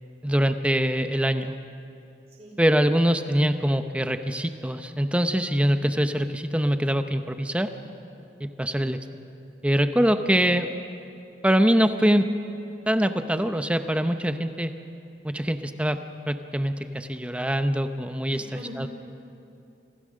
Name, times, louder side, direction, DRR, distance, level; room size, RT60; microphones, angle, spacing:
voice 1, 0.2-1.5 2.6-7.7 8.4-9.0 9.6-10.7 11.4-12.3 12.9-14.7 15.2-16.0 16.3-18.4 18.8-18.9, equal, 5° right, 8 dB, 0.7 m, -23 dB
voice 2, 2.3-2.8 18.3-18.9, equal, 40° right, -3 dB, 4.5 m, -42 dB
26.5 x 16.0 x 6.4 m, 2.7 s
head